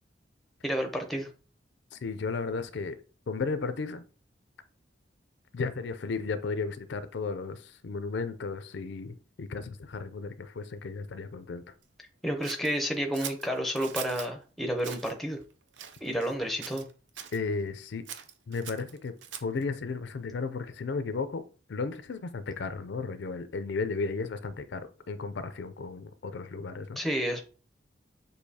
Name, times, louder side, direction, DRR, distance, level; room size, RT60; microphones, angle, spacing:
voice 1, 0.6-1.3 12.2-15.4 16.0-16.9 27.0-27.4, equal, ahead, 0.6 m, -30 dB
voice 2, 1.9-3.0 3.3-4.0 5.5-11.6 17.3-18.0 18.5-19.1 19.4-21.4 21.7-27.0, left 4 dB, 70° left, 0.4 m, -34 dB
Scissors, 12.4-14.3 14.8-15.1 15.7-16.4 16.6-17.4 18.0-19.6, right 9 dB, 80° right, 0.5 m, -42 dB
6.3 x 2.7 x 2.7 m
head